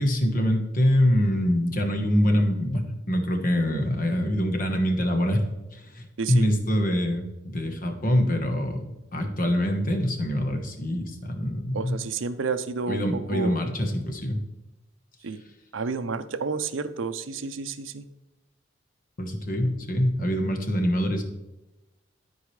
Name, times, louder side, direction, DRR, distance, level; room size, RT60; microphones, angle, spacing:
voice 1, 0.0-5.5 5.7-7.2 7.5-12.0 12.9-14.4 19.2-21.2, equal, 45° left, 5 dB, 1.2 m, -24 dB
voice 2, 6.2-6.5 11.7-13.6 15.2-15.4 15.7-18.1, right 4 dB, 85° right, 11 dB, 0.6 m, -30 dB
13.0 x 4.7 x 3.2 m, 1.0 s
head